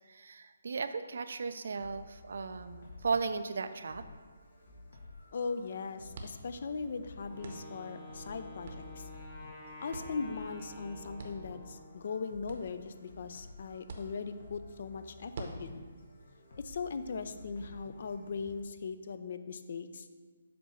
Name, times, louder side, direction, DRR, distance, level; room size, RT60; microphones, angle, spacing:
voice 1, 0.1-4.0, right 4 dB, 65° right, 10 dB, 0.4 m, -36 dB
sound 1, 1.8-18.6, left 3 dB, 70° left, 1.1 m, -53 dB
sound 2, 4.3-17.7, right 2 dB, 50° right, 0.8 m, -52 dB
voice 2, 5.3-9.1 9.8-15.9 16.6-20.1, left 4 dB, 55° left, 10 dB, 0.4 m, -39 dB
Wind instrument woodwind instrument, 7.2-12.1, left 1 dB, 20° left, 0.7 m, -49 dB
7.5 x 2.7 x 5.6 m, 1.5 s
hypercardioid pair, 165°, 0 cm